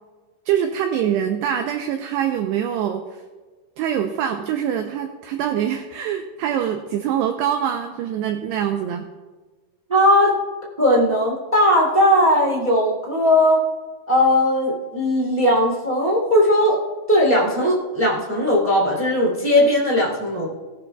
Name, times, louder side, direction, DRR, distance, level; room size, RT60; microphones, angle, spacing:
voice 1, 0.5-3.2 3.8-9.1, right 9 dB, 85° right, 5 dB, 2.4 m, -24 dB
voice 2, 9.9-10.3 10.8-13.6 14.1-16.8 17.1-20.5, left 1 dB, 30° right, -3 dB, 0.7 m, -18 dB
19.5 x 12.0 x 2.3 m, 1.3 s
omnidirectional pair, 5.6 m